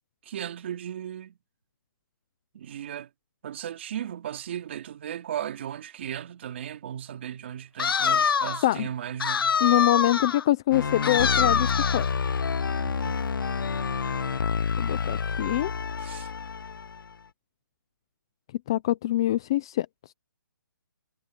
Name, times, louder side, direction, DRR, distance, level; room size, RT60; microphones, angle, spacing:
voice 1, 0.2-1.4 2.5-3.1 3.4-9.6 10.1-10.2 12.8-13.3 16.0-16.3, right 10 dB, 30° right, 2.5 m, -36 dB
sound 1, 7.8-8.7 9.2-10.4 11.0-12.1, left 6 dB, 90° left, 0.4 m, -25 dB
voice 2, 9.6-12.0 14.8-15.7 18.7-19.9, left 15 dB, 10° left, 0.4 m, -24 dB
sound 2, 10.7-17.1, left 5 dB, 65° left, 0.9 m, -29 dB
hypercardioid pair, 170°, 12 cm